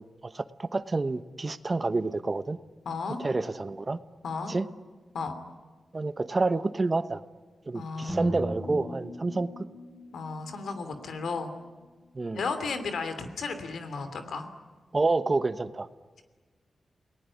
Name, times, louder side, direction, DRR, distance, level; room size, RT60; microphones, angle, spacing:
voice 1, 0.0-2.6 3.2-4.0 4.5-4.7 5.9-7.2 7.7-9.5 12.1-12.4 14.9-15.9, right 3 dB, 35° right, 13 dB, 1.1 m, -28 dB
voice 2, 2.8-3.2 4.2-4.5 5.1-5.3 7.7-8.2 10.1-11.5 12.3-14.5, left 4 dB, 85° left, 9 dB, 3.0 m, -34 dB
sound 1, 8.1-12.2, equal, 5° right, 4.8 m, -39 dB
29.0 x 19.0 x 9.9 m, 1.4 s
cardioid pair, 75°, 0 cm